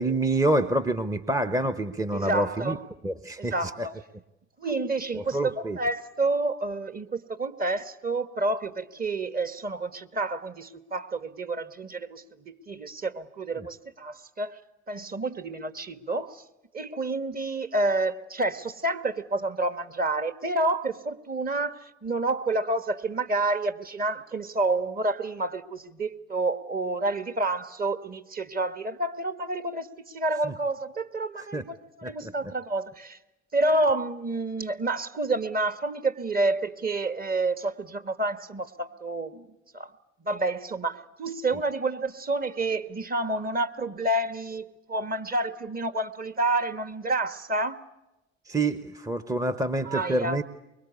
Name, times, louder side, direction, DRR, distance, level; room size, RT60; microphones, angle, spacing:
voice 1, 0.0-2.8 3.0-3.9 5.1-5.8 13.6-13.7 30.4-30.5 31.4-31.6 32.0-32.1 48.5-50.4, right 2 dB, 10° right, 1.0 m, -27 dB
voice 2, 2.1-2.8 3.4-4.0 4.6-14.6 14.9-16.4 16.7-33.2 33.5-39.5 39.7-39.9 40.2-47.8 49.8-50.4, right 2 dB, 25° right, 1.6 m, -29 dB
24.5 x 22.0 x 8.3 m
hypercardioid pair, 70°, 35 cm